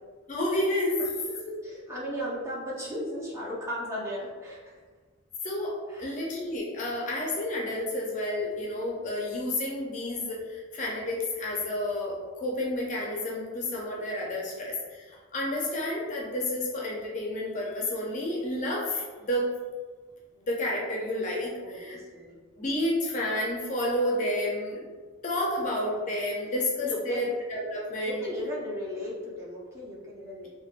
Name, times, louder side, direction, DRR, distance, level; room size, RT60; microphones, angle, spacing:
voice 1, 0.3-1.9 5.4-19.5 20.4-22.0 22.6-24.8 25.2-28.2, left 1 dB, 35° left, -3 dB, 0.5 m, -30 dB
voice 2, 1.6-4.6 5.9-6.1 21.6-22.3 26.5-27.3 28.0-30.5, equal, 15° right, -6 dB, 0.5 m, -36 dB
3.3 x 2.1 x 2.4 m, 1.4 s
head